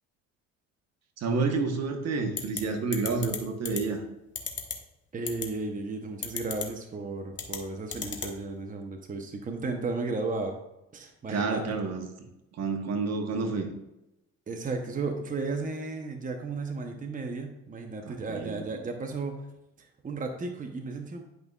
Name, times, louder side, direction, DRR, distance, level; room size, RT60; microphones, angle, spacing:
voice 1, 1.2-4.0 11.3-12.1 12.6-13.7 18.0-18.6, right 4 dB, 60° right, 5 dB, 1.2 m, -29 dB
sound 1, 2.4-2.6 2.9-3.4 3.7-3.8 4.4-4.7 5.3-5.5 6.2-6.7 7.3-7.6 7.9-8.3, left 6 dB, 40° left, 1.3 m, -32 dB
voice 2, 5.1-10.6 10.9-11.6 14.5-19.3 19.8-21.2, right 3 dB, 25° right, 4 dB, 0.9 m, -34 dB
10.5 x 5.3 x 2.4 m, 0.88 s
supercardioid pair, 80°, 30 cm